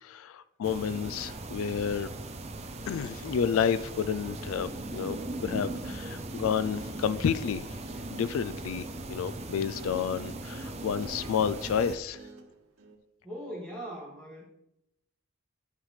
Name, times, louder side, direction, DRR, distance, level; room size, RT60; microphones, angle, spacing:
voice 1, 0.0-2.1 2.9-7.6 8.1-12.2, left 7 dB, 80° left, 0.3 m, -30 dB
sound 1, 0.6-12.0, right 2 dB, 30° right, 0.6 m, -39 dB
Guitar, 7.8-13.0, right 1 dB, 90° right, 1.6 m, -53 dB
voice 2, 13.2-14.4, equal, 5° left, 2.3 m, -40 dB
12.0 x 5.7 x 3.2 m
head